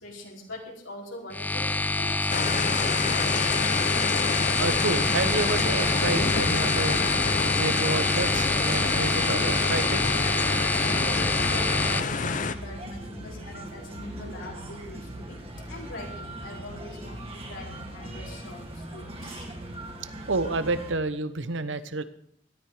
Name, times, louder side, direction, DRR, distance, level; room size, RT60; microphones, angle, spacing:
voice 1, 0.0-1.7 2.0-3.3 10.4-12.1 12.5-15.4 15.7-19.5, left 1 dB, 80° left, -2 dB, 4.7 m, -42 dB
sound 1, 1.3-12.0, left 2 dB, 10° left, 0.5 m, -26 dB
sound 2, 2.3-12.6, left 5 dB, 40° left, 0.7 m, -28 dB
voice 2, 4.6-7.0 7.6-10.0 20.3-22.0, right 3 dB, 70° right, 13 dB, 1.0 m, -29 dB
sound 3, 4.9-20.9, right 1 dB, 30° right, 2.4 m, -39 dB
17.5 x 12.5 x 5.0 m, 0.67 s
head